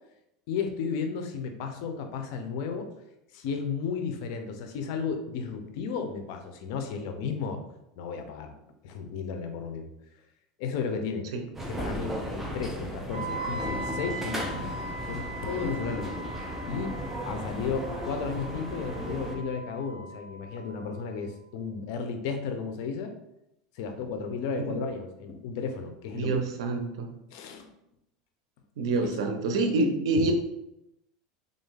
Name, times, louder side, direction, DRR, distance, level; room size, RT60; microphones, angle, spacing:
voice 1, 0.5-2.9 3.3-7.6 8.0-8.5 8.8-9.9 10.6-11.3 11.7-16.2 16.7-17.0 17.2-23.1 23.7-26.4 27.3-27.7 29.0-29.1 30.2-30.3, left 5 dB, 65° left, 6 dB, 0.6 m, -34 dB
sound 1, 11.5-19.4, equal, 10° right, 0.7 m, -35 dB
Wind instrument woodwind instrument, 13.1-21.0, right 2 dB, 60° right, 1.2 m, -40 dB
voice 2, 26.1-27.1 28.8-30.3, right 3 dB, 85° right, 5 dB, 0.6 m, -27 dB
3.5 x 2.6 x 3.8 m, 0.84 s
supercardioid pair, 120°, 3 cm